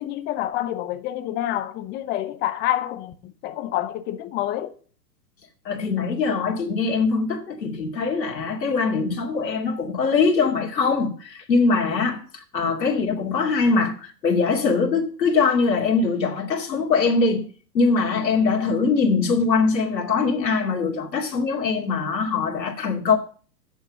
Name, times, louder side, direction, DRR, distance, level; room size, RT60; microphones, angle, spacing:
voice 1, 0.0-4.7, left 13 dB, 20° left, 0.7 m, -28 dB
voice 2, 5.6-17.5 17.7-23.2, left 4 dB, 85° left, 2.6 m, -22 dB
8.3 x 7.1 x 7.2 m
hypercardioid pair, 125°, 50 cm